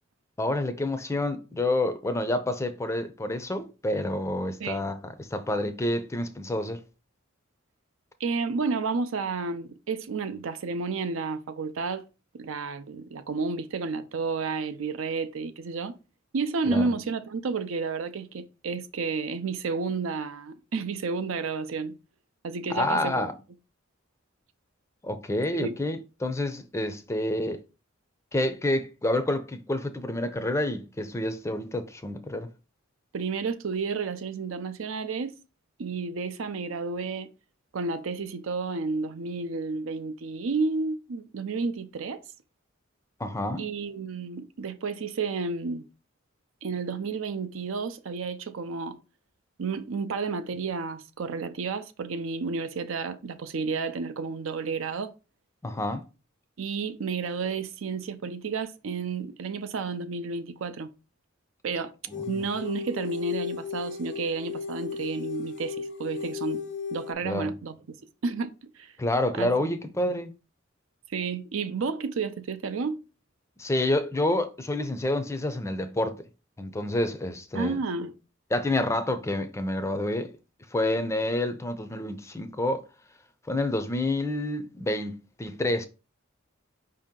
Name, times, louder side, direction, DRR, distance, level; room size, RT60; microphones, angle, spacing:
voice 1, 0.4-6.8 16.7-16.9 22.7-23.3 25.0-27.6 28.3-32.5 43.2-43.6 55.6-56.0 62.1-62.5 67.2-67.5 69.0-70.3 73.6-76.1 76.6-77.8 78.5-80.3 80.7-82.8 83.5-85.9, left 1 dB, 15° left, 0.4 m, -28 dB
voice 2, 8.2-12.1 12.3-16.0 16.3-22.0 22.4-23.3 25.5-25.8 33.1-35.4 35.8-37.3 37.7-42.2 43.6-45.8 46.6-49.0 49.6-55.1 56.6-60.9 61.6-61.9 62.3-67.8 68.2-68.9 69.4-69.5 71.1-73.0 77.5-78.1, right 4 dB, 80° right, 0.5 m, -31 dB
sound 1, 62.1-67.1, left 6 dB, 60° left, 0.5 m, -35 dB
5.1 x 2.8 x 3.6 m
head